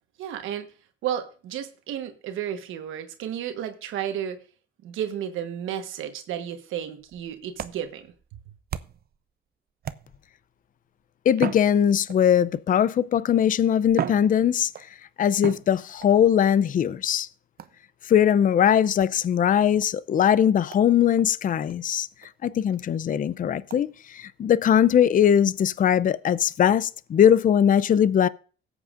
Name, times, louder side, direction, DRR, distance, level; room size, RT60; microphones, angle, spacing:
voice 1, 0.2-0.7 1.0-4.4 4.8-8.1, right 10 dB, 90° right, 1.2 m, -32 dB
sound 1, 7.0-9.2 9.8-10.4 11.3-12.4 13.3-13.4 13.9-14.9 15.4-16.2 17.6-17.9 19.0-19.2 19.8-19.9 20.3-20.4 20.7-20.9 21.2-21.3 21.7-21.8 22.2-22.3 22.7-22.8 23.7-23.8, right 9 dB, 50° right, 0.6 m, -35 dB
voice 2, 11.3-14.7 15.2-17.3 18.0-22.1 22.4-28.3, left 9 dB, 45° left, 0.5 m, -20 dB
17.5 x 8.1 x 2.5 m
cardioid pair, 90°, 20 cm